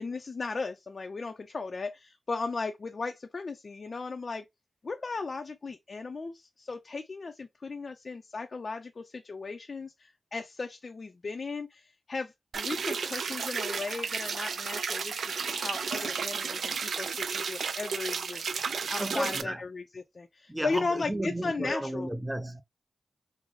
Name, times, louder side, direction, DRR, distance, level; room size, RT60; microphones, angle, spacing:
voice 1, 0.0-4.4 4.8-15.2 15.4-22.1, left 4 dB, 60° left, 0.4 m, -36 dB
sound 1, 12.5-19.4, right 5 dB, 85° right, 0.3 m, -33 dB
voice 2, 19.0-19.6 20.5-22.6, right 1 dB, 10° right, 0.5 m, -33 dB
3.8 x 2.0 x 3.0 m
cardioid pair, 50°, 0 cm